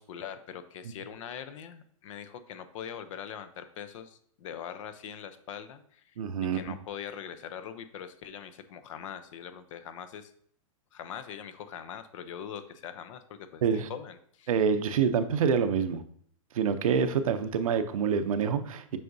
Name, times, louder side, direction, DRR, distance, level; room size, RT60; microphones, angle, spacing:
voice 1, 0.0-6.2 6.5-10.3 10.9-14.5, left 8 dB, 65° left, 11 dB, 0.7 m, -42 dB
voice 2, 6.2-6.6 13.6-13.9 14.5-16.0 16.5-19.0, right 6 dB, 80° right, 10 dB, 0.6 m, -26 dB
7.6 x 4.9 x 2.7 m, 0.62 s
hypercardioid pair, 130°, 18 cm